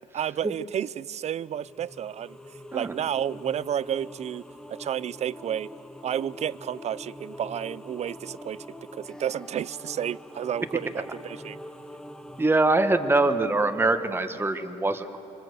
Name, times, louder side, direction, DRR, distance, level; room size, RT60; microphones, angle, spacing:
voice 1, 0.1-2.4 2.7-5.7 6.0-8.7 8.9-11.6, right 9 dB, 40° right, 20 dB, 0.5 m, -31 dB
sound 1, 1.4-12.5, left 1 dB, 5° left, 0.9 m, -44 dB
voice 2, 12.4-15.2, right 2 dB, 15° right, 8 dB, 1.3 m, -23 dB
26.0 x 25.0 x 8.0 m, 3.0 s
cardioid pair, 110°, 17 cm